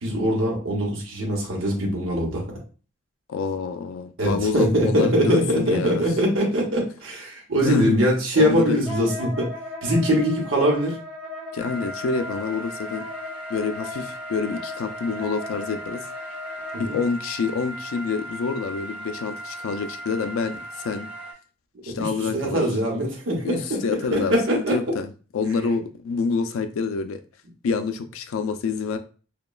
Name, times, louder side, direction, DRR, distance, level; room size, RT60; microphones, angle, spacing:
voice 1, 0.0-2.4 4.2-9.5 9.8-11.0 16.7-17.0 21.9-24.8, equal, 75° right, 0.8 m, -22 dB
voice 2, 3.3-6.1 7.6-8.0 8.4-8.8 11.5-13.0 13.5-16.1 16.8-20.6 20.8-21.1 21.8-22.6 23.4-27.2 27.6-29.0, left 5 dB, 90° left, 0.3 m, -27 dB
Wind instrument woodwind instrument, 8.9-17.1, left 2 dB, 5° right, 1.2 m, -37 dB
sound 1, 11.6-21.3, right 1 dB, 25° right, 0.9 m, -38 dB
2.9 x 2.2 x 2.3 m
head